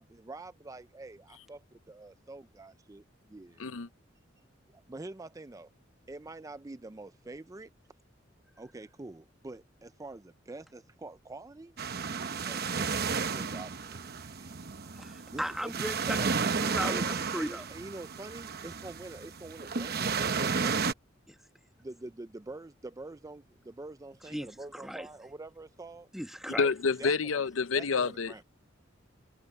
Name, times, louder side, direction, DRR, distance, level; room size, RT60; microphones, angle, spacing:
voice 1, 0.0-3.6 4.7-5.7 6.1-7.7 8.6-11.7 12.5-14.6 15.3-15.7 16.2-16.4 16.8-20.8 21.8-26.1 26.5-26.6 27.0-27.4 27.7-28.4, right 2 dB, 15° right, 0.4 m, -46 dB
sound 1, 11.8-20.9, right 5 dB, 50° right, 0.9 m, -33 dB
voice 2, 15.0-17.6 21.3-21.4 24.3-25.1 26.1-26.7, equal, ahead, 1.4 m, -37 dB
voice 3, 26.6-28.4, left 5 dB, 85° left, 0.7 m, -28 dB
head